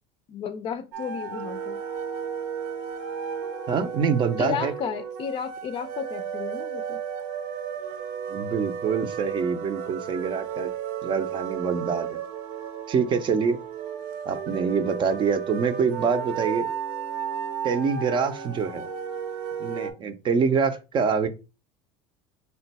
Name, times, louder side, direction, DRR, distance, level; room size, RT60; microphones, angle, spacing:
voice 1, 0.3-1.8 4.4-7.0, left 7 dB, 40° left, 0.5 m, -33 dB
sound 1, 0.9-19.9, right 8 dB, 70° right, 0.7 m, -33 dB
voice 2, 3.7-4.7 8.3-10.7 11.0-12.2 12.9-13.6 14.3-16.7 17.6-18.9 19.6-21.3, right 5 dB, 35° right, 0.5 m, -25 dB
3.7 x 2.2 x 4.1 m
supercardioid pair, 110°, 14 cm